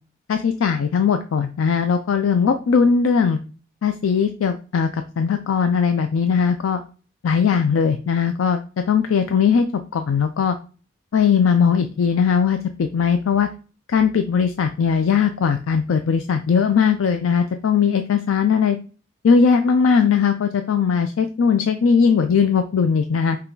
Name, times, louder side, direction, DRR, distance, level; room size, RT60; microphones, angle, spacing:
voice 1, 0.3-3.4 3.8-6.8 7.2-9.7 9.9-10.6 11.1-13.5 13.9-18.8 19.2-23.4, left 6 dB, 80° left, 7 dB, 0.4 m, -19 dB
5.6 x 2.3 x 3.8 m, 0.36 s
head